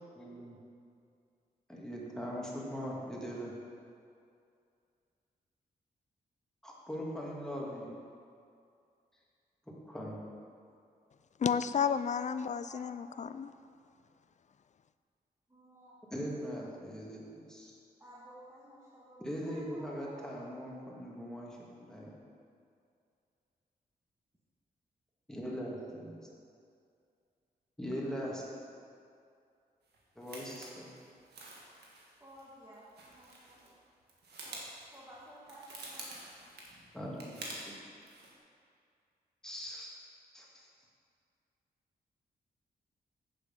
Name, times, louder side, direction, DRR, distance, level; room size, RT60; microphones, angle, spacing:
voice 1, 0.2-0.6 1.7-3.5 6.6-7.9 9.7-10.2 16.1-17.8 19.2-22.1 25.3-26.2 27.8-28.6 30.2-30.9 36.9-37.7 39.4-39.9 40.3-40.7, equal, 5° left, -4 dB, 2.2 m, -41 dB
voice 2, 11.4-13.5, left 7 dB, 45° left, 13 dB, 0.4 m, -32 dB
voice 3, 12.7-13.2 15.5-16.0 18.0-20.7 32.2-33.8 34.4-36.6, right 1 dB, 15° right, -8 dB, 1.9 m, -54 dB
sound 1, 29.9-33.8 34.0-37.7 38.0-38.3, right 2 dB, 85° right, 1.7 m, -48 dB
8.1 x 7.6 x 5.4 m, 2.4 s
cardioid pair, 75°, 17 cm